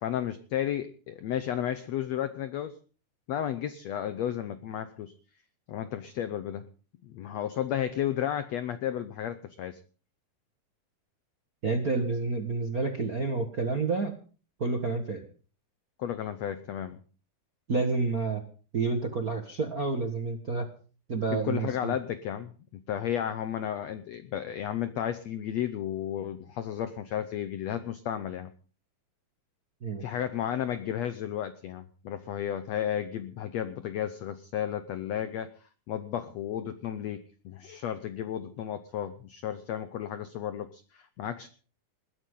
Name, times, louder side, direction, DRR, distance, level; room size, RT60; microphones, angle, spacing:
voice 1, 0.0-2.8 3.3-5.1 5.7-6.7 7.0-9.8 16.0-17.0 21.3-22.5 22.9-28.5 30.0-35.5 35.9-41.5, left 10 dB, 75° left, 12 dB, 1.5 m, -33 dB
voice 2, 11.6-14.2 14.6-15.2 17.7-18.4 18.7-20.7 21.1-21.9 29.8-30.0, right 3 dB, 45° right, 4 dB, 1.1 m, -29 dB
21.0 x 15.0 x 3.8 m, 0.39 s
omnidirectional pair, 4.1 m